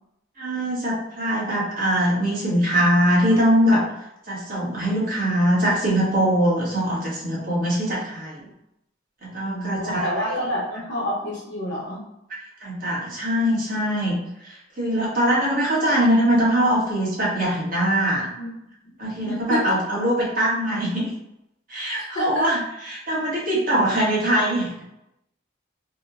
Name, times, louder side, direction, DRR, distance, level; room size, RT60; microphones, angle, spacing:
voice 1, 0.4-3.8 4.3-8.5 9.2-10.4 12.3-18.4 19.0-21.1 21.7-22.6 22.8-24.8, equal, 45° right, -5 dB, 0.9 m, -22 dB
voice 2, 9.4-12.0 18.3-18.5 18.8-19.0 19.2-19.8 22.0-22.5, left 1 dB, 75° left, -11 dB, 0.8 m, -29 dB
2.8 x 2.1 x 2.4 m, 0.84 s
head